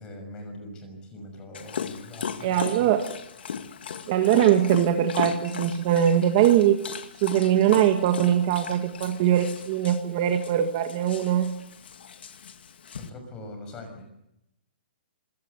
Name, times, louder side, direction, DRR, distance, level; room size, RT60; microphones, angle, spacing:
voice 1, 0.0-2.9 13.0-14.0, left 1 dB, 15° left, 5 dB, 6.2 m, -42 dB
Dog, 1.5-13.1, left 7 dB, 70° left, 2.1 m, -37 dB
voice 2, 2.4-3.0 4.1-6.8 7.2-11.5, right 10 dB, 30° right, 6 dB, 1.6 m, -21 dB
25.5 x 17.5 x 8.1 m, 0.83 s
hypercardioid pair, 170°, 6 cm